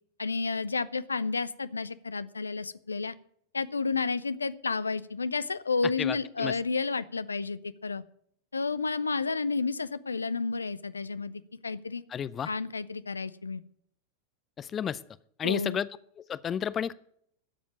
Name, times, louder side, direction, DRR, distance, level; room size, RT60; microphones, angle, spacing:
voice 1, 0.2-3.1 3.5-8.0 8.5-12.0 12.5-13.6 15.4-15.8, left 4 dB, 75° left, 16 dB, 0.5 m, -31 dB
voice 2, 6.0-6.6 12.1-12.5 14.6-15.0 15.4-15.9 16.2-16.9, left 8 dB, 25° left, 18 dB, 0.5 m, -32 dB
12.5 x 7.2 x 8.4 m, 0.67 s
figure-of-eight pair, 90°, 0 cm